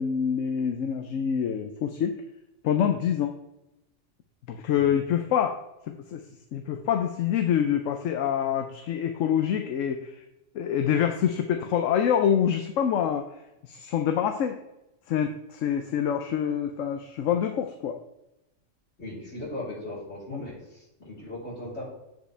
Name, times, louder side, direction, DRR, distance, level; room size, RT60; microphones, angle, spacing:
voice 1, 0.0-2.2 2.6-3.3 4.5-5.6 5.9-6.2 6.5-10.2 10.5-13.3 13.6-14.6 15.1-17.9 20.3-20.4, left 8 dB, 80° left, 6 dB, 1.0 m, -26 dB
voice 2, 19.0-21.8, left 1 dB, 55° left, -7 dB, 4.2 m, -38 dB
15.0 x 5.1 x 3.3 m, 0.91 s
omnidirectional pair, 1.3 m